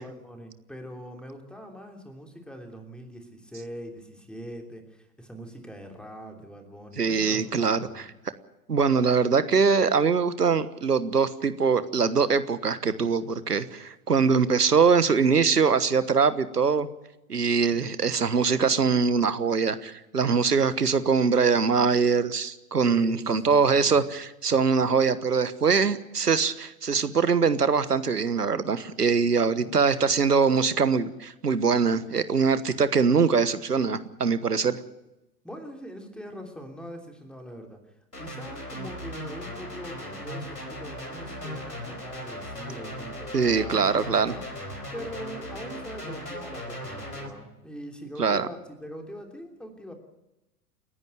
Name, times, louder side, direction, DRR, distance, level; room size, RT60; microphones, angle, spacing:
voice 1, 0.0-8.1 17.7-18.0 22.8-24.0 29.5-30.2 35.4-44.5 44.9-49.9, equal, ahead, 3 dB, 3.1 m, -42 dB
voice 2, 7.0-8.0 8.7-16.9 17.3-34.8 43.3-44.3 48.2-48.5, right 5 dB, 80° right, 14 dB, 1.4 m, -23 dB
sound 1, 38.1-47.3, equal, 85° left, 4.6 m, -38 dB
29.5 x 11.0 x 9.1 m, 0.95 s
figure-of-eight pair, 100°, 46 cm